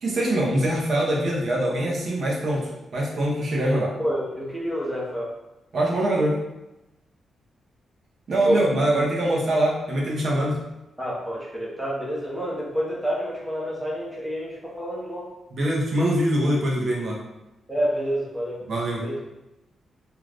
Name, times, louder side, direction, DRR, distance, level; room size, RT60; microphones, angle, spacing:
voice 1, 0.0-3.9 5.7-6.4 8.3-10.6 15.5-17.2 18.7-19.0, right 1 dB, 50° right, -3 dB, 0.6 m, -23 dB
voice 2, 3.6-5.3 8.4-8.6 11.0-15.3 17.7-18.6 19.0-19.2, equal, ahead, -5 dB, 0.7 m, -28 dB
2.5 x 2.3 x 3.3 m, 0.96 s
cardioid pair, 130°, 0 cm